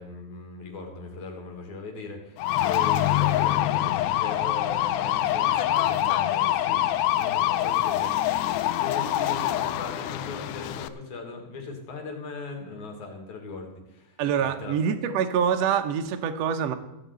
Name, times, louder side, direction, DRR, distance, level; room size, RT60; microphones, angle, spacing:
voice 1, 0.0-14.8, left 3 dB, 60° left, 3 dB, 3.3 m, -39 dB
sound 1, 2.4-10.9, left 13 dB, 80° left, 1.8 m, -25 dB
voice 2, 14.2-16.7, right 7 dB, 75° right, 5 dB, 1.5 m, -25 dB
15.5 x 6.5 x 8.2 m, 0.92 s
omnidirectional pair, 4.1 m